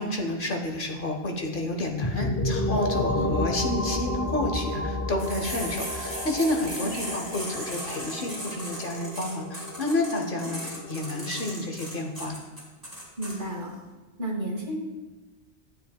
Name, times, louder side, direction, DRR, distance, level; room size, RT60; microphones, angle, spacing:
voice 1, 0.0-12.4, left 1 dB, 50° left, 2 dB, 1.0 m, -30 dB
sound 1, 2.0-11.6, left 1 dB, 30° left, 0.3 m, -31 dB
sound 2, 5.2-13.4, equal, 20° right, 2.4 m, -37 dB
voice 2, 6.8-7.2 10.4-10.5 13.2-13.7 14.2-14.8, right 1 dB, 45° right, 0 dB, 1.5 m, -33 dB
12.5 x 7.7 x 2.3 m, 1.2 s
omnidirectional pair, 1.2 m